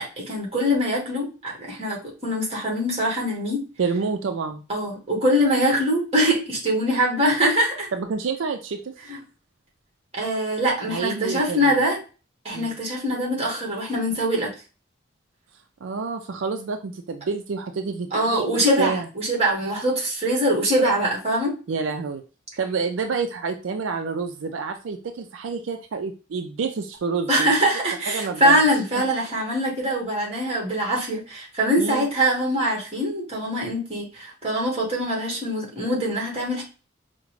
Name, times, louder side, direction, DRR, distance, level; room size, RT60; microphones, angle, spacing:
voice 1, 0.0-3.6 4.7-7.9 10.1-12.0 12.4-14.5 18.1-21.5 27.3-36.6, equal, 35° right, -2 dB, 1.5 m, -23 dB
voice 2, 3.8-4.6 7.9-8.9 10.9-11.8 12.5-12.8 15.8-19.1 21.7-22.2 22.6-27.5 28.1-28.6 28.9-29.1 31.8-32.1, right 5 dB, 85° right, 5 dB, 0.4 m, -28 dB
4.9 x 2.1 x 3.1 m, 0.34 s
head